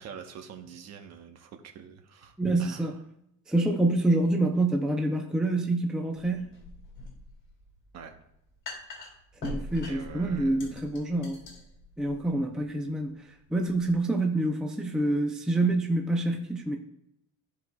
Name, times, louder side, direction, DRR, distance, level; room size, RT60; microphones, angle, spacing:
voice 1, 0.0-2.3 2.6-3.0 7.9-8.2 9.9-10.8, right 6 dB, 50° right, 4 dB, 1.0 m, -45 dB
voice 2, 2.4-3.0 3.5-6.6 9.4-11.4 12.0-13.2 13.5-16.8, right 2 dB, ahead, 2 dB, 0.5 m, -27 dB
sound 1, 6.2-13.9, left 1 dB, 35° left, 2.2 m, -43 dB
13.5 x 4.7 x 2.3 m, 0.77 s
cardioid pair, 160°, 33 cm